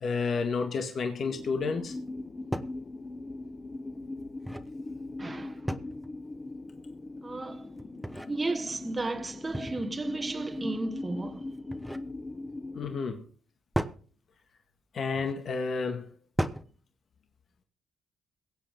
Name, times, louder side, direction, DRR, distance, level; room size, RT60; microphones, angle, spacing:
voice 1, 0.0-2.0 12.7-13.3 14.9-16.1, left 4 dB, 55° left, 1.9 m, -30 dB
sound 1, 1.2-13.0, left 2 dB, 25° left, 1.0 m, -40 dB
sound 2, 2.1-2.2 2.5-2.8 4.2-4.8 5.7-6.1 7.8-8.3 9.5-10.0 11.5-12.1 13.7-14.0 15.1-15.4 16.4-16.8, equal, ahead, 1.1 m, -34 dB
voice 2, 5.2-5.7 7.2-7.7 8.3-11.5, right 2 dB, 25° right, 1.4 m, -34 dB
22.5 x 8.2 x 3.7 m
cardioid pair, 95°, 0 cm